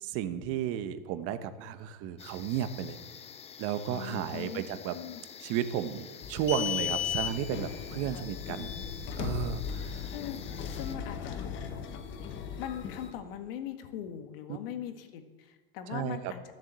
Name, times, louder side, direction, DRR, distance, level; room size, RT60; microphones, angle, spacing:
voice 1, 0.0-3.0 3.6-5.0 5.4-8.7 9.2-10.1 15.9-16.3, right 9 dB, 50° right, 11 dB, 1.2 m, -33 dB
sound 1, 2.2-11.0, left 7 dB, 20° left, 0.7 m, -49 dB
voice 2, 3.9-4.6 4.9-5.2 8.1-8.3 10.1-11.4 12.6-16.5, left 10 dB, 75° left, 8 dB, 1.7 m, -41 dB
sound 2, 6.2-13.1, left 8 dB, 40° left, 1.5 m, -36 dB
14.0 x 7.4 x 7.6 m, 1.4 s
supercardioid pair, 120°, 29 cm